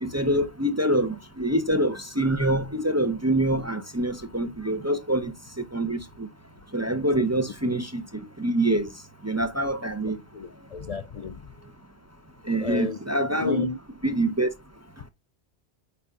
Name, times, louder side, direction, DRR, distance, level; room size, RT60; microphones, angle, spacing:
voice 1, 0.0-5.3 5.7-6.3 6.7-8.0 8.4-8.9 9.2-10.2 12.5-13.7 14.0-14.5, right 1 dB, 20° right, 0.6 m, -25 dB
voice 2, 10.3-11.5 12.6-13.0 13.4-13.8, left 4 dB, 50° left, 0.4 m, -32 dB
8.6 x 5.3 x 2.4 m
omnidirectional pair, 1.1 m